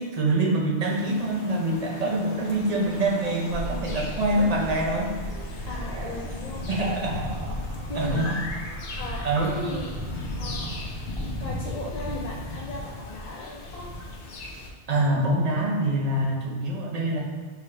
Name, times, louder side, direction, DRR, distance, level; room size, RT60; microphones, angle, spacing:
voice 1, 0.0-5.1 6.7-7.2 7.9-8.4 9.2-9.5 14.9-17.2, right 2 dB, 40° right, -2 dB, 0.7 m, -25 dB
sound 1, 0.8-14.7, left 1 dB, 85° left, 1.0 m, -36 dB
sound 2, 3.5-13.5, right 1 dB, 80° right, 0.9 m, -38 dB
voice 2, 5.7-6.6 7.9-8.3 9.0-9.9 10.4-10.7 11.4-13.8, left 2 dB, 50° left, -4 dB, 0.5 m, -36 dB
5.8 x 2.3 x 3.1 m, 1.4 s
omnidirectional pair, 1.1 m